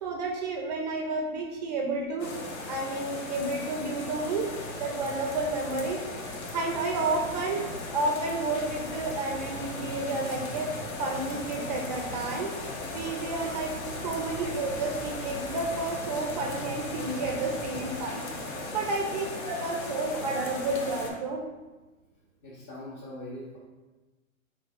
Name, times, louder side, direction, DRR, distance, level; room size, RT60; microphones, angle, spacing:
voice 1, 0.0-2.3 2.7-6.0 6.5-10.7 11.0-12.6 12.9-18.3 18.7-21.4, right 2 dB, 35° right, 2 dB, 0.4 m, -31 dB
sound 1, 2.2-21.1, left 2 dB, 80° left, 1.0 m, -37 dB
sound 2, 3.6-18.0, right 2 dB, 5° left, 1.0 m, -46 dB
voice 2, 22.4-23.6, left 1 dB, 25° left, -8 dB, 0.7 m, -42 dB
3.8 x 3.1 x 3.5 m, 1.2 s
hypercardioid pair, 135°, 41 cm